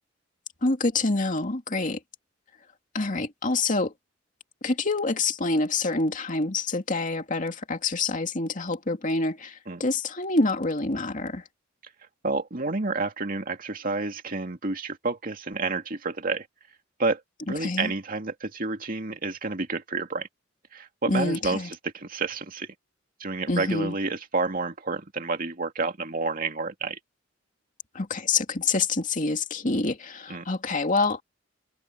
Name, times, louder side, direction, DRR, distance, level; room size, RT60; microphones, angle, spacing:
voice 1, 0.6-2.0 2.9-3.9 4.6-11.4 17.6-17.9 21.1-21.7 23.5-23.9 27.9-31.2, left 3 dB, 45° left, 2.4 m, -26 dB
voice 2, 12.2-16.5 17.0-20.3 20.7-22.7 23.2-27.0 30.3-30.5, right 3 dB, 45° right, 2.4 m, -30 dB
head